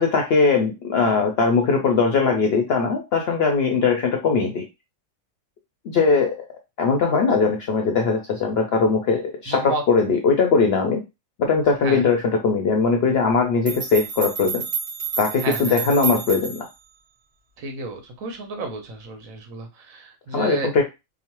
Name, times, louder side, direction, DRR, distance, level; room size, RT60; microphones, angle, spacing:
voice 1, 0.0-4.6 5.8-6.4 6.8-11.0 11.4-14.6 15.2-16.7 20.3-20.8, left 4 dB, 65° left, 3 dB, 0.6 m, -20 dB
voice 2, 9.5-9.8 11.8-12.0 15.4-15.8 17.6-20.7, right 3 dB, 80° right, 4 dB, 1.2 m, -31 dB
sound 1, 13.3-13.4 13.7-16.8, right 6 dB, 30° right, 0.7 m, -30 dB
3.0 x 2.1 x 2.9 m, 0.24 s
omnidirectional pair, 1.4 m